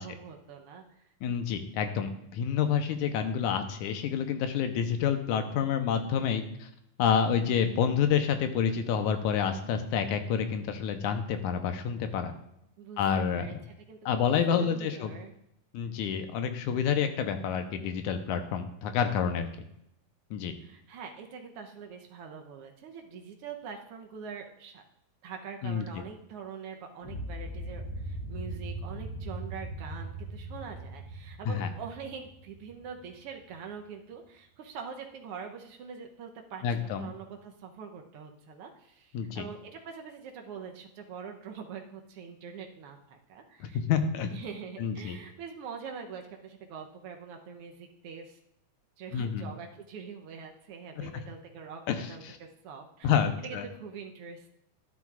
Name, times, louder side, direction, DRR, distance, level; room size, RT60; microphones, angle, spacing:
voice 1, 0.0-1.1 12.8-13.6 13.9-15.3 20.6-24.8 25.2-43.8 44.3-48.4 49.0-54.5, right 6 dB, 75° right, 3 dB, 1.3 m, -44 dB
voice 2, 1.2-6.7 7.0-12.3 13.0-13.5 14.1-15.1 15.7-19.5 20.3-20.5 25.6-25.9 31.5-31.7 36.6-37.1 39.1-39.4 43.6-44.3 44.8-45.2 49.1-49.5 51.0-51.1 51.9-52.4 53.0-53.7, left 7 dB, 80° left, 7 dB, 2.2 m, -28 dB
sound 1, 27.0-33.1, right 1 dB, 50° left, 3.9 m, -39 dB
12.5 x 11.0 x 2.4 m, 0.79 s
omnidirectional pair, 3.6 m